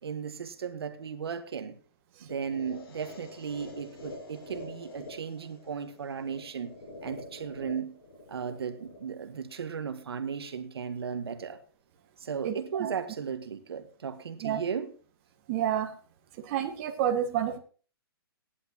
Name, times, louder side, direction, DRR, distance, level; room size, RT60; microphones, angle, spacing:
voice 1, 0.0-1.7 2.2-6.7 7.0-8.0 8.3-11.6 12.2-15.0, right 7 dB, 75° right, 1.9 m, -36 dB
sound 1, 2.3-10.3, left 2 dB, 65° left, 6.8 m, -47 dB
voice 2, 12.4-12.9 14.4-14.6 15.5-15.9 16.4-17.6, right 10 dB, 30° right, 1.9 m, -29 dB
17.0 x 11.0 x 2.9 m
hypercardioid pair, 160°, 13 cm